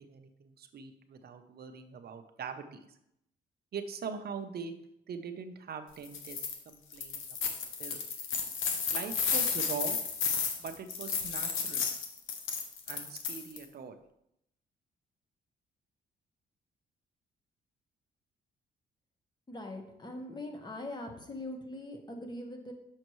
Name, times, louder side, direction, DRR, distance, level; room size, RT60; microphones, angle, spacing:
voice 1, 0.0-3.0 3.7-4.7 5.1-8.0 8.9-10.0 10.6-11.9 12.9-14.0, right 6 dB, 50° right, 7 dB, 0.7 m, -42 dB
sound 1, 6.0-6.6 6.9-13.6, left 6 dB, 80° left, 1.0 m, -33 dB
voice 2, 19.5-22.7, left 1 dB, 20° left, 3 dB, 1.2 m, -42 dB
6.5 x 6.3 x 3.1 m, 0.79 s
cardioid pair, 90°, 20 cm